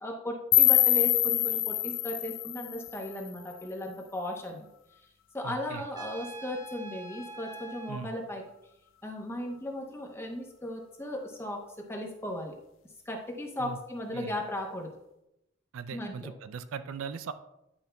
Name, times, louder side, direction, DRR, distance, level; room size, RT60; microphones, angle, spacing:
voice 1, 0.0-4.7 5.3-8.4 9.0-12.6 13.1-14.9 15.9-16.3, left 1 dB, 10° left, 1 dB, 0.8 m, -36 dB
sound 1, 0.5-3.5, left 14 dB, 65° left, 0.4 m, -25 dB
voice 2, 5.4-5.8 7.9-8.2 13.6-13.8 14.1-14.4 15.7-17.3, right 6 dB, 75° right, 11 dB, 0.4 m, -39 dB
Trumpet, 5.9-8.0, right 3 dB, 20° right, 0.6 m, -44 dB
9.8 x 5.3 x 2.3 m, 0.87 s
head